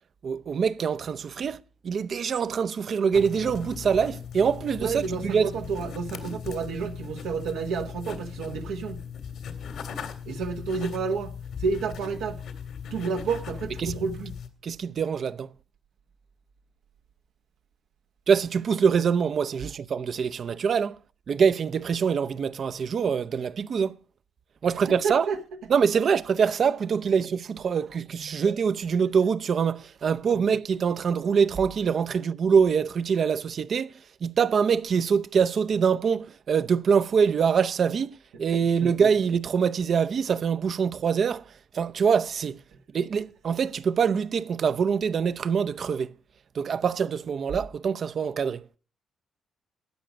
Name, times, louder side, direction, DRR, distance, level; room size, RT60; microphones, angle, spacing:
voice 1, 0.2-5.5 13.8-13.9 14.6-15.5 18.3-21.0 21.3-24.0 24.6-25.3 25.7-41.5 41.7-42.6 42.9-46.1 46.5-48.7, right 6 dB, 55° right, 0.6 m, -24 dB
sound 1, 3.1-14.5, left 7 dB, 75° left, 1.9 m, -38 dB
voice 2, 4.8-9.0 10.2-12.4 12.9-14.4 24.9-25.4 28.3-28.4 38.6-38.9, right 5 dB, 85° right, 1.1 m, -30 dB
13.0 x 9.2 x 5.2 m
cardioid pair, 90°, 0 cm